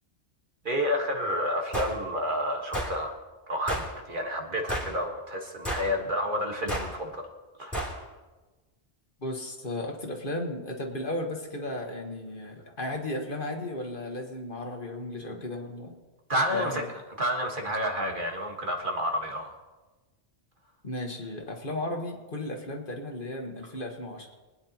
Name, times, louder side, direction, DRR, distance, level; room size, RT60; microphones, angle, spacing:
voice 1, 0.6-3.1 3.5-7.3 7.6-7.9 15.3-15.4 16.3-16.8 17.2-19.5, equal, 50° right, 2 dB, 1.7 m, -30 dB
sound 1, 1.7-2.0 2.7-2.9 3.7-3.9 4.7-5.0 5.6-5.9 6.7-6.9 7.7-8.0, equal, ahead, 3.0 m, -31 dB
voice 2, 9.2-16.0 16.5-16.8 20.8-24.3, left 1 dB, 50° left, 2 dB, 1.6 m, -35 dB
24.0 x 9.7 x 2.9 m, 1.2 s
omnidirectional pair, 1.1 m